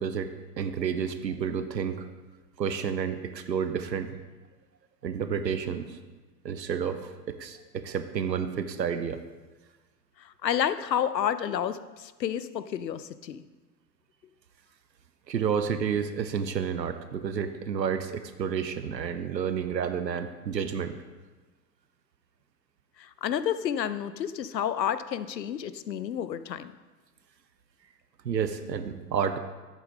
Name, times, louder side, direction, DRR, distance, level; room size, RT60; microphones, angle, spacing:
voice 1, 0.0-2.1 2.6-4.2 5.0-6.0 6.4-9.2 15.3-21.0 28.2-29.4, right 7 dB, 85° right, 10 dB, 0.8 m, -30 dB
voice 2, 10.2-13.4 23.0-26.7, left 9 dB, 85° left, 14 dB, 0.6 m, -30 dB
10.5 x 8.3 x 3.7 m, 1.3 s
figure-of-eight pair, 90°, 49 cm